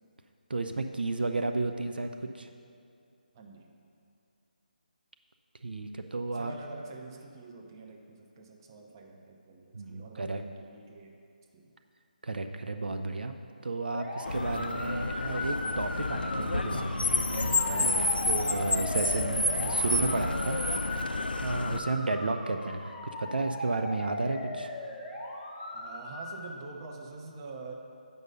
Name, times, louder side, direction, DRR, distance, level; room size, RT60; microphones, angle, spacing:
voice 1, 0.5-2.1 2.4-2.5 5.6-6.5 9.7-10.4 12.2-13.4 13.6-24.7, right 2 dB, 75° right, 6 dB, 0.5 m, -33 dB
voice 2, 3.3-3.7 6.3-11.1 11.5-11.7 25.7-27.7, right 3 dB, 25° right, 2 dB, 0.7 m, -46 dB
sound 1, 13.9-26.4, left 1 dB, 10° left, 0.9 m, -38 dB
Car, 14.3-21.8, left 2 dB, 85° left, 0.5 m, -30 dB
7.9 x 5.4 x 5.4 m, 2.5 s
figure-of-eight pair, 155°, 5 cm